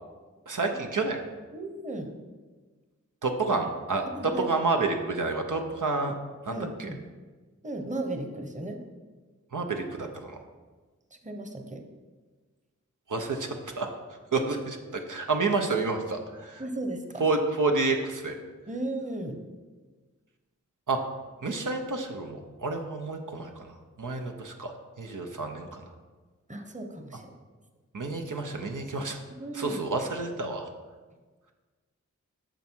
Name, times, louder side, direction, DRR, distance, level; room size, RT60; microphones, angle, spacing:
voice 1, 0.5-1.2 3.2-6.1 6.4-6.9 9.5-10.4 13.1-14.0 14.3-16.6 17.2-18.3 20.9-21.0 21.4-23.7 24.0-25.8 27.9-29.2 29.5-30.7, right 3 dB, 85° right, 3 dB, 0.8 m, -29 dB
voice 2, 1.5-2.1 4.1-4.4 6.5-7.0 7.6-8.8 11.1-11.8 16.6-17.0 18.7-19.4 26.5-27.3 29.3-29.8, right 2 dB, 25° right, 4 dB, 1.0 m, -35 dB
9.1 x 6.2 x 4.5 m, 1.3 s
wide cardioid pair, 50°, 30 cm